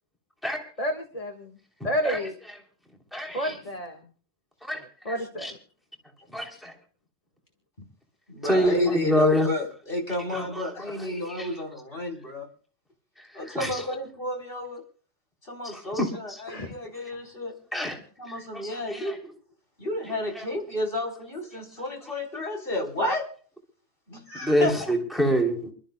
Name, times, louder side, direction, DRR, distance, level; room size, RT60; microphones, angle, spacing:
voice 1, 0.8-1.6 1.8-2.4 3.3-4.0 5.1-5.5 16.5-16.7, equal, 35° left, 4 dB, 1.8 m, -30 dB
voice 2, 2.0-2.6 3.1-3.6 4.7-4.8 5.1-5.5 6.3-6.7 8.4-9.5 10.2-11.5 13.3-13.9 15.6-16.4 17.7-18.0 18.3-19.2 20.0-20.4 24.4-25.6, equal, ahead, 2 dB, 3.1 m, -27 dB
voice 3, 8.3-12.5 13.3-14.8 15.4-17.5 18.2-19.2 19.8-23.3 24.1-24.9, left 1 dB, 55° left, 0 dB, 4.5 m, -31 dB
28.0 x 13.0 x 2.3 m, 0.43 s
omnidirectional pair, 1.1 m